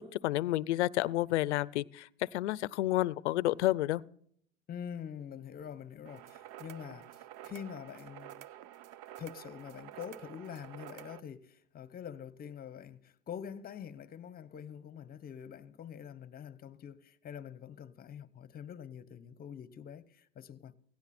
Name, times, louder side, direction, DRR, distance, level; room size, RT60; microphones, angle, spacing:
voice 1, 0.0-4.0, left 16 dB, 85° left, 0.6 m, -30 dB
voice 2, 4.7-8.5 9.2-20.7, left 8 dB, 25° left, 0.9 m, -45 dB
sound 1, 6.1-11.2, right 12 dB, 55° right, 0.7 m, -50 dB
17.0 x 16.5 x 4.3 m
hypercardioid pair, 105°, 33 cm